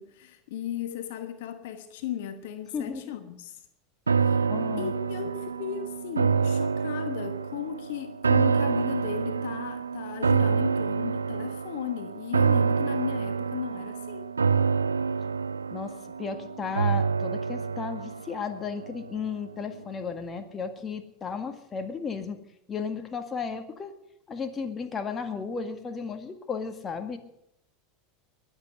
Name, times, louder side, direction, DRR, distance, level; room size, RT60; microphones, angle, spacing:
voice 1, 0.0-3.6 4.1-4.5 4.8-14.3, left 10 dB, 65° left, 1.2 m, -36 dB
voice 2, 2.7-3.1 4.4-4.9 15.7-22.4 22.7-23.9 24.3-27.2, left 5 dB, 25° left, 1.8 m, -34 dB
sound 1, 4.1-19.4 19.7-19.8, right 5 dB, 90° right, 0.6 m, -27 dB
21.0 x 8.2 x 6.6 m
hypercardioid pair, 85°, 0 cm